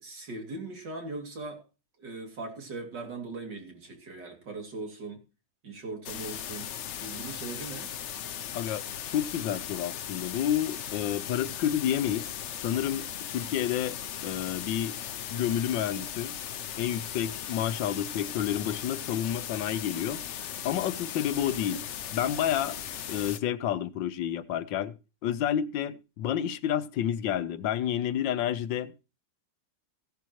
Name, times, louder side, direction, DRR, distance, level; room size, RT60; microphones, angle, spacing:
voice 1, 0.0-1.6 2.0-5.2 5.6-6.7 7.0-7.9, right 3 dB, 70° right, 3.2 m, -39 dB
sound 1, 6.0-23.4, left 9 dB, 65° left, 0.7 m, -38 dB
voice 2, 9.1-12.3 12.6-14.0 14.2-15.0 15.3-16.3 16.8-20.2 20.6-21.8 22.1-22.8 23.1-24.9 25.2-29.0, left 10 dB, 85° left, 1.5 m, -29 dB
16.0 x 10.5 x 3.0 m
omnidirectional pair, 2.0 m